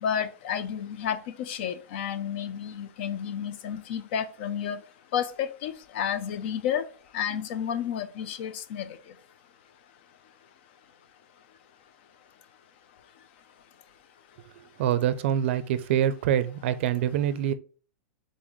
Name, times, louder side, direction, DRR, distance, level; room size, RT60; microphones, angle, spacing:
voice 1, 0.0-4.8 5.1-6.8 7.1-9.0, left 8 dB, 45° left, 0.5 m, -31 dB
voice 2, 14.8-17.5, right 10 dB, 50° right, 0.5 m, -25 dB
3.9 x 3.9 x 3.1 m
supercardioid pair, 170°, 8 cm